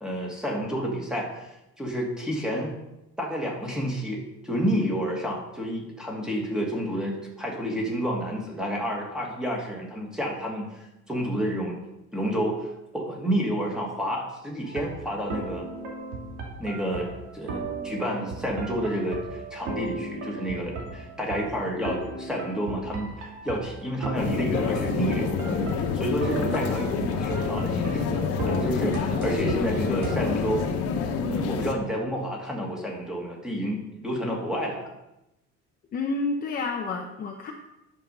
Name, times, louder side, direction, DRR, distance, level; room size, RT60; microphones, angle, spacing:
voice 1, 0.0-2.8 3.2-11.8 12.1-15.7 16.6-30.6 31.2-34.9, equal, ahead, -1 dB, 1.7 m, -30 dB
sound 1, 14.6-30.2, right 3 dB, 75° right, 2.7 m, -36 dB
sound 2, 24.1-31.7, left 5 dB, 50° left, 1.3 m, -27 dB
voice 2, 35.9-37.5, left 3 dB, 30° left, 1 dB, 0.8 m, -29 dB
10.5 x 6.9 x 5.4 m, 0.92 s
cardioid pair, 175°, 30 cm